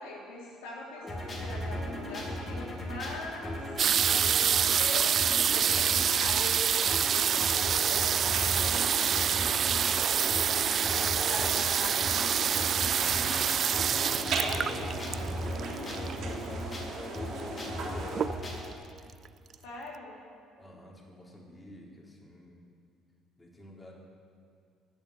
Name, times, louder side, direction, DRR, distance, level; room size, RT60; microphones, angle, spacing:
voice 1, 0.0-3.5 4.7-7.2 10.8-12.1 19.6-20.2, left 2 dB, 80° left, -3 dB, 3.0 m, -41 dB
sound 1, 1.0-18.7, left 1 dB, 35° left, 4.3 m, -37 dB
sound 2, 3.8-16.3 17.1-17.2 17.4-17.8 18.1-18.7 19.2-19.3 19.5-19.6, right 8 dB, 50° right, 0.3 m, -27 dB
sound 3, 7.2-18.2, right 4 dB, 65° right, 3.6 m, -39 dB
voice 2, 11.1-12.0 13.1-15.2 16.0-18.3 20.6-22.6 23.4-23.9, left 1 dB, 20° left, -2 dB, 4.0 m, -48 dB
16.5 x 7.2 x 10.0 m, 2.3 s
hypercardioid pair, 60°, 0 cm